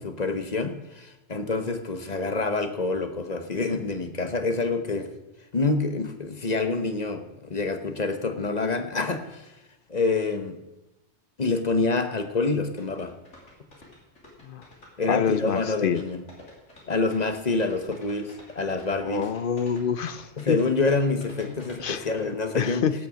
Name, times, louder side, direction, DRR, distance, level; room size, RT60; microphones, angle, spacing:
voice 1, 0.0-5.1 5.5-9.5 9.9-10.6 11.4-13.1 15.0-16.2 16.9-19.2 20.4-22.8, left 3 dB, 35° left, 8 dB, 1.0 m, -27 dB
sound 1, 12.8-22.2, left 1 dB, 75° left, 3.6 m, -48 dB
voice 2, 15.1-16.0 19.0-20.6 21.8-22.1 22.5-22.9, left 7 dB, 55° left, 13 dB, 0.7 m, -26 dB
17.0 x 6.7 x 6.3 m, 0.99 s
omnidirectional pair, 1.2 m